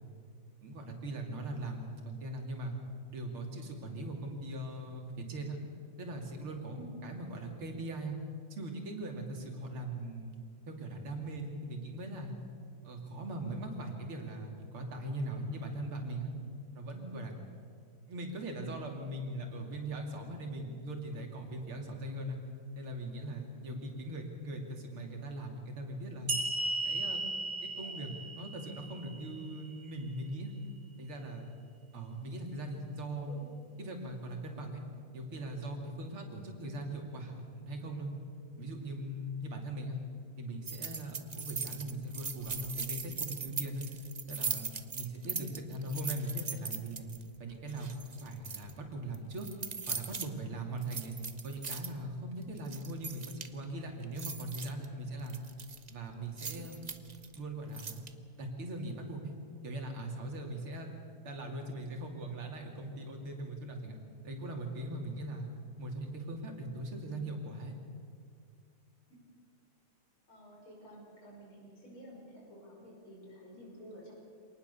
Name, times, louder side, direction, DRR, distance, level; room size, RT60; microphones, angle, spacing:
voice 1, 0.6-2.7 3.1-5.6 6.0-8.2 8.5-10.4 10.7-12.3 12.8-16.3 16.7-17.3 18.1-22.4 22.8-26.3 26.8-27.2 27.8-30.5 31.0-31.5 31.9-33.5 33.8-34.8 35.1-38.1 38.6-40.0 40.4-43.9 44.3-47.1 47.4-47.9 48.2-49.5 49.9-51.2 51.4-55.4 55.9-56.8 57.3-58.0 58.4-59.4 59.6-60.9 61.2-64.0 64.2-65.5 65.8-67.7, right 1 dB, 80° right, 2 dB, 3.7 m, -40 dB
voice 2, 23.6-24.0 27.8-27.9 31.9-32.0 33.3-33.5 45.2-45.5 70.3-74.1, equal, 75° left, -2 dB, 6.9 m, -52 dB
sound 1, 26.3-29.7, right 2 dB, 35° right, 1.7 m, -36 dB
sound 2, 40.6-47.2 47.7-48.7 49.1-50.3 50.8-51.9 52.4-53.6 54.0-54.8 55.3-55.9 56.4-57.4 57.7-58.1, right 5 dB, 55° right, 0.4 m, -39 dB
26.0 x 19.0 x 7.0 m, 2.2 s
omnidirectional pair, 2.3 m